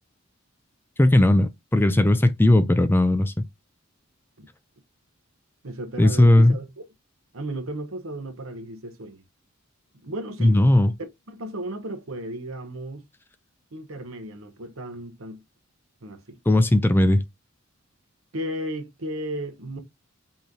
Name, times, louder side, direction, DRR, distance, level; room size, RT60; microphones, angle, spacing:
voice 1, 1.0-3.3 6.0-6.6 10.4-10.9 16.5-17.2, left 1 dB, 10° left, 0.4 m, -17 dB
voice 2, 5.6-6.7 7.3-9.2 10.0-10.6 11.0-13.0 13.7-15.4 16.0-16.4 18.3-19.8, right 1 dB, 80° right, 1.0 m, -34 dB
5.6 x 3.1 x 2.7 m
head